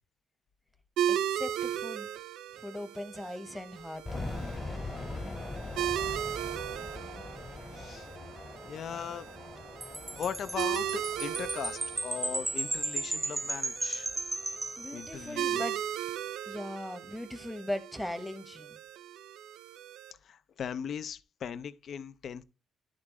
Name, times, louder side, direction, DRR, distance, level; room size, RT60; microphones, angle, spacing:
sound 1, 1.0-20.1, right 10 dB, 85° right, 0.4 m, -37 dB
voice 1, 1.1-2.1 2.6-4.2 14.8-15.8 16.4-18.8, left 1 dB, 5° left, 1.0 m, -39 dB
sound 2, 4.1-14.9, left 2 dB, 35° left, 1.8 m, -43 dB
voice 2, 7.7-8.1 8.6-9.3 10.1-14.1 14.9-15.6 20.2-22.4, left 8 dB, 60° left, 0.5 m, -39 dB
Wind chime, 9.8-15.5, right 2 dB, 15° right, 0.4 m, -35 dB
10.5 x 3.6 x 3.6 m
cardioid pair, 90°, 0 cm